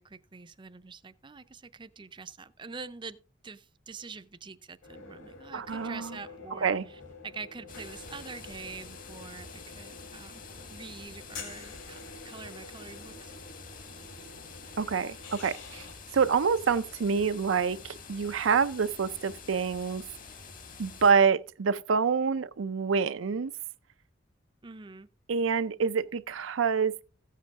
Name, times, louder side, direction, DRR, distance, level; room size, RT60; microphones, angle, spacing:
voice 1, 0.0-3.2 3.4-10.4 10.7-12.0 12.2-13.3 24.6-25.1, right 4 dB, 25° right, 0.5 m, -45 dB
sound 1, 4.8-15.9, left 3 dB, 70° left, 3.2 m, -48 dB
voice 2, 5.5-6.2 6.5-6.8 14.8-15.9 16.1-20.0 20.8-23.5 25.3-27.0, right 5 dB, 85° right, 0.5 m, -27 dB
sound 2, 7.7-21.1, left 4 dB, 45° left, 1.5 m, -47 dB
15.0 x 7.5 x 3.6 m
head